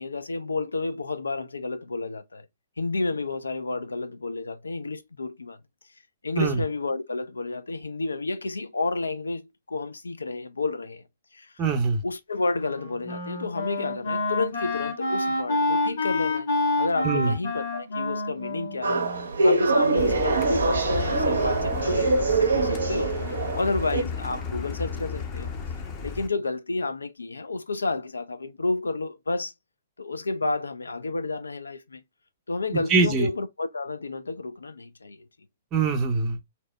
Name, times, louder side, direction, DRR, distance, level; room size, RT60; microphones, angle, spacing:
voice 1, 0.0-2.5 2.8-5.6 6.2-11.0 11.3-11.5 12.0-16.5 16.8-23.1 23.5-25.5 26.0-29.5 30.0-32.0 32.5-35.3, left 3 dB, 75° left, 0.3 m, -30 dB
voice 2, 11.6-12.0 17.0-17.3 32.7-33.3 35.7-36.4, right 4 dB, 25° right, 0.6 m, -23 dB
Wind instrument woodwind instrument, 12.6-19.7, left 2 dB, 55° left, 1.0 m, -28 dB
sound 1, 18.8-24.0, right 3 dB, 70° right, 0.5 m, -24 dB
Car, 20.0-26.3, left 4 dB, 30° left, 0.6 m, -33 dB
2.8 x 2.0 x 3.2 m
figure-of-eight pair, 115°, 0 cm